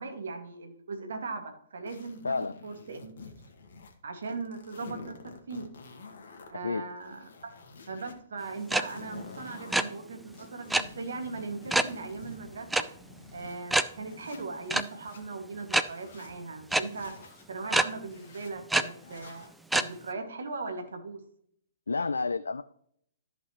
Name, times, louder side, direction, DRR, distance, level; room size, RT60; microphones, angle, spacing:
voice 1, 0.0-2.3 2.6-3.1 4.0-5.7 6.5-7.5 7.9-12.9 13.3-17.1 17.5-21.2, right 3 dB, 65° right, 5 dB, 1.9 m, -39 dB
sound 1, 1.9-4.0 4.2-6.5 6.9-8.1 8.5-9.8 10.3-13.6 14.1-15.2 15.7-16.3 16.9-17.5 18.0-18.5 19.0-19.5, left 4 dB, 55° left, 1.8 m, -49 dB
voice 2, 2.2-2.6 6.5-6.9 21.9-22.6, left 4 dB, 75° left, 12 dB, 0.4 m, -30 dB
sound 2, 8.7-8.8 9.1-9.3 9.5-9.8 10.7-10.8 11.7-11.9 12.7-12.8 13.2-13.3 13.7-13.8 14.7-14.8 15.7-15.8 16.7-16.8 17.7-17.8 18.7-18.8 19.7-19.8, right 2 dB, 5° right, 0.4 m, -24 dB
13.5 x 5.4 x 3.0 m, 0.66 s
figure-of-eight pair, 115°, 0 cm